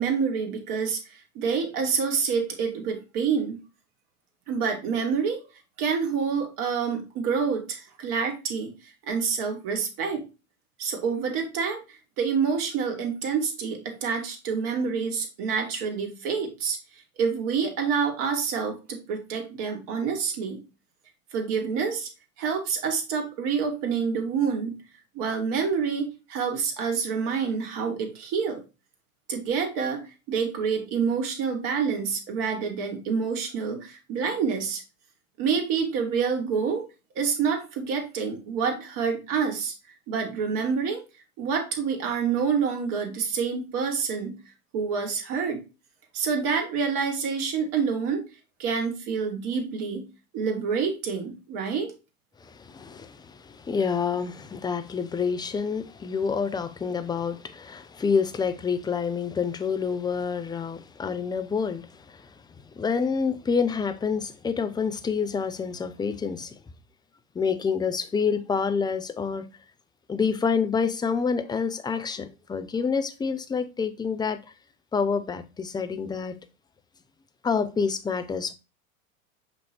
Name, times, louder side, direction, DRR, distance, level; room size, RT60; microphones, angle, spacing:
voice 1, 0.0-3.6 4.5-5.4 5.8-8.7 9.0-10.2 10.8-16.8 17.2-20.6 21.3-22.1 22.4-24.7 25.1-28.6 29.3-30.0 30.3-34.8 35.4-36.9 37.2-39.7 40.1-41.0 41.4-44.4 44.7-45.6 46.1-48.2 48.6-50.1 50.3-51.9, right 6 dB, 50° right, 2.3 m, -27 dB
voice 2, 52.4-62.3 62.7-66.5 67.3-69.5 70.1-74.4 74.9-76.4 77.4-78.5, left 5 dB, 10° left, 0.6 m, -28 dB
7.9 x 3.1 x 4.4 m
hypercardioid pair, 95°, 42 cm